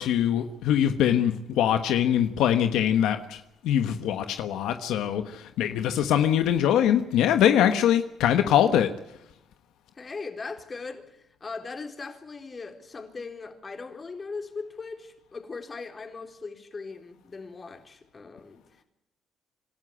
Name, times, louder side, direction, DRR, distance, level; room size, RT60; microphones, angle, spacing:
voice 1, 0.0-8.9, left 10 dB, 90° left, 1.3 m, -23 dB
voice 2, 10.0-18.8, left 4 dB, 35° left, 3.9 m, -39 dB
26.0 x 13.0 x 10.0 m
cardioid pair, 90°, 0 cm